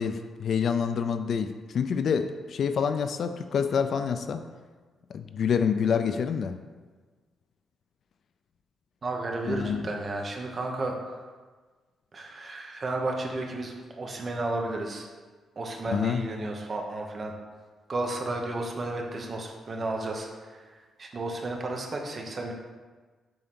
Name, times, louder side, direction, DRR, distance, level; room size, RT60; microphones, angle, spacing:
voice 1, 0.0-4.4 5.1-6.6 9.5-9.8 15.9-16.2, left 6 dB, 50° left, 9 dB, 0.4 m, -27 dB
voice 2, 9.0-11.2 12.1-15.1 15.6-17.3 17.9-20.6 21.0-22.5, right 2 dB, 30° right, 2 dB, 1.0 m, -33 dB
7.6 x 3.9 x 6.0 m, 1.4 s
wide cardioid pair, 170°, 0 cm